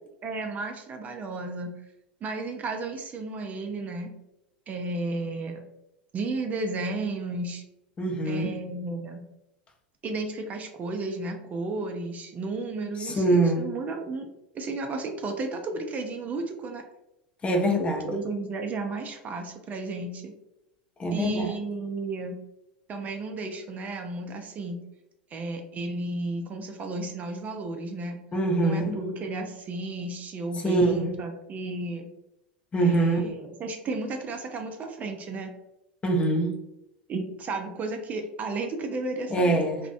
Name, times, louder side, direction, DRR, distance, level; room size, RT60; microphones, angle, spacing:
voice 1, 0.2-1.8 2.2-4.1 4.7-5.6 6.1-7.6 8.3-9.2 10.0-14.3 14.5-16.8 18.0-20.3 21.1-22.4 22.9-24.8 25.3-28.2 28.6-32.1 32.8-35.5 37.1-39.6, right 2 dB, 30° right, 4 dB, 0.4 m, -33 dB
voice 2, 8.0-8.5 13.0-13.6 17.4-18.1 21.0-21.5 28.3-29.0 30.6-31.1 32.7-33.2 36.0-36.6 39.3-39.8, right 2 dB, 20° left, 2 dB, 0.5 m, -24 dB
2.4 x 2.1 x 2.5 m, 0.88 s
hypercardioid pair, 90°, 5 cm